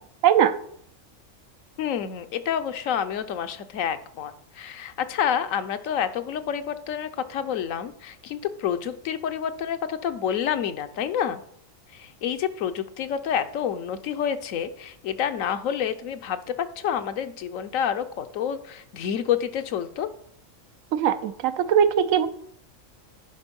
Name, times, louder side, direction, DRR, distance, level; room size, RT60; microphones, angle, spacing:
voice 1, 0.2-0.5 20.9-22.3, right 9 dB, 85° right, 12 dB, 1.0 m, -20 dB
voice 2, 1.8-11.4 11.9-20.1, left 8 dB, 80° left, 10 dB, 1.1 m, -28 dB
9.9 x 5.3 x 5.3 m, 0.67 s
omnidirectional pair, 1.4 m